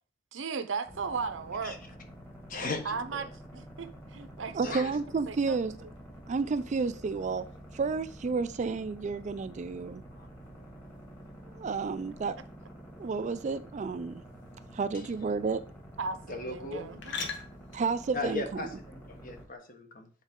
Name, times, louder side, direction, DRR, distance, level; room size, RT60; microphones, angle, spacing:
voice 1, 0.3-1.8 2.8-5.0 5.3-5.6 16.0-17.2, right 5 dB, 85° right, 0.7 m, -36 dB
sound 1, 0.9-19.4, equal, 15° left, 1.8 m, -49 dB
voice 2, 2.5-3.3 4.6-4.9 10.2-10.3 16.3-17.0 18.1-20.1, left 3 dB, 45° left, 1.3 m, -37 dB
sound 2, 4.5-19.5, left 5 dB, 70° left, 1.1 m, -49 dB
voice 3, 4.5-5.7 6.3-7.5 7.7-10.0 11.5-12.4 13.0-14.2 14.7-15.6 17.7-18.7, right 4 dB, 40° right, 0.3 m, -31 dB
8.2 x 4.0 x 3.7 m
head